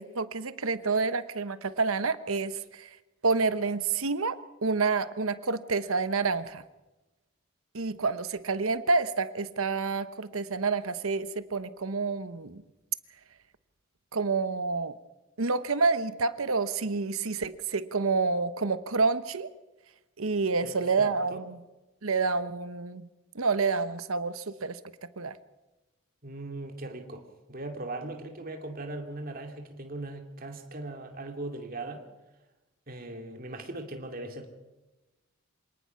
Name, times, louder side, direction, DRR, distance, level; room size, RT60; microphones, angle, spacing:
voice 1, 0.0-2.9 3.2-6.6 7.7-12.6 14.1-14.9 15.4-19.5 20.2-21.6 22.0-23.1 23.3-24.8 25.2-25.4, right 4 dB, 85° right, 13 dB, 1.1 m, -28 dB
voice 2, 20.6-21.4 26.2-32.0 32.9-34.5, right 2 dB, 45° right, 4 dB, 2.5 m, -39 dB
26.5 x 19.0 x 5.8 m, 1.1 s
head